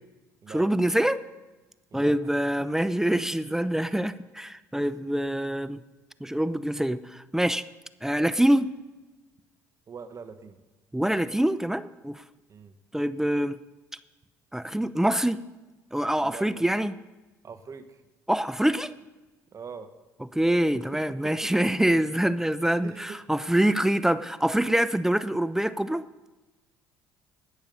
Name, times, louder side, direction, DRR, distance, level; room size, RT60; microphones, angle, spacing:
voice 1, 0.5-1.2 1.9-5.8 6.2-7.7 8.0-8.7 10.9-12.2 12.9-13.6 14.5-15.4 15.9-17.0 18.3-18.9 20.3-26.0, right 1 dB, 5° right, 14 dB, 0.5 m, -25 dB
voice 2, 9.9-10.6 12.5-12.8 16.2-16.5 17.4-17.8 19.5-19.9 21.2-21.5 22.8-23.2, right 6 dB, 40° right, 10 dB, 1.2 m, -42 dB
19.5 x 7.1 x 5.4 m, 1.1 s
hypercardioid pair, 65°, 8 cm